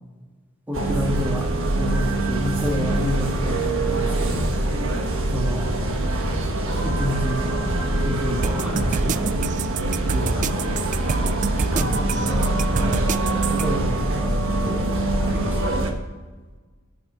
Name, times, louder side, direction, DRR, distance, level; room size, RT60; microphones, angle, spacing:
voice 1, 0.7-4.5 5.3-5.7 6.8-7.7 8.0-9.5 10.1-10.5 11.6-14.9 15.2-15.7, left 1 dB, 10° right, 1 dB, 1.6 m, -29 dB
sound 1, 0.7-15.9, right 2 dB, 65° right, 1.3 m, -24 dB
sound 2, 8.4-13.7, right 6 dB, 35° right, 0.3 m, -27 dB
13.0 x 5.8 x 5.4 m, 1.3 s
head